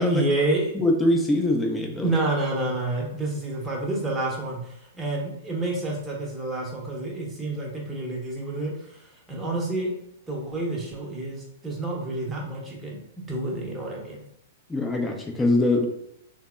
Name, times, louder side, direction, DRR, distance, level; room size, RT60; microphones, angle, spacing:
voice 1, 0.0-0.7 2.0-9.9 10.3-13.0 13.3-14.2, right 2 dB, 10° right, -3 dB, 0.8 m, -29 dB
voice 2, 0.7-2.1 14.7-15.9, left 1 dB, 10° left, 1 dB, 0.5 m, -23 dB
3.4 x 2.0 x 2.4 m, 0.76 s
hypercardioid pair, 120°, 0 cm